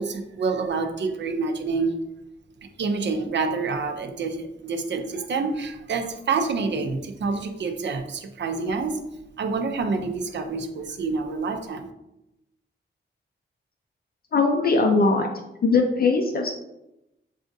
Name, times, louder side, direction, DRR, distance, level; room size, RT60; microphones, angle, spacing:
voice 1, 0.0-2.0 2.8-9.0 9.4-11.9, right 4 dB, 65° right, 5 dB, 0.5 m, -27 dB
voice 2, 14.3-15.3 15.6-16.5, left 3 dB, 50° left, 3 dB, 0.4 m, -20 dB
6.1 x 2.4 x 2.6 m, 0.89 s
wide cardioid pair, 135°, 20 cm